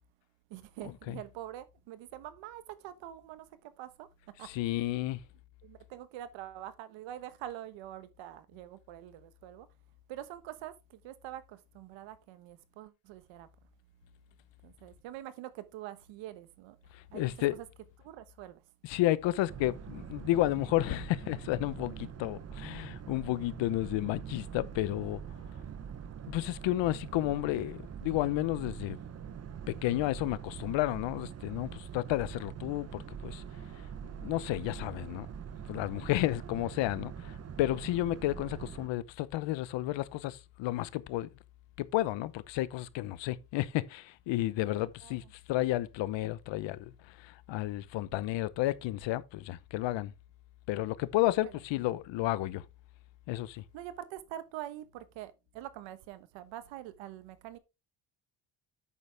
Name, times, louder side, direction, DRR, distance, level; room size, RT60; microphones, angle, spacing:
voice 1, 0.5-4.9 5.6-9.7 10.1-13.5 14.6-16.8 17.1-17.6 18.0-18.6 25.7-26.1 45.0-45.2 51.4-51.5 53.7-57.6, right 13 dB, 85° right, 1.2 m, -45 dB
voice 2, 4.4-5.2 16.9-17.5 18.8-25.2 26.3-29.0 29.7-33.4 34.2-35.3 35.7-41.3 41.8-50.1 50.7-52.6 53.3-53.6, left 16 dB, 80° left, 0.9 m, -32 dB
Boat Water vehicle, 19.5-38.9, right 8 dB, 35° right, 0.8 m, -44 dB
8.6 x 6.7 x 3.4 m
cardioid pair, 110°, 44 cm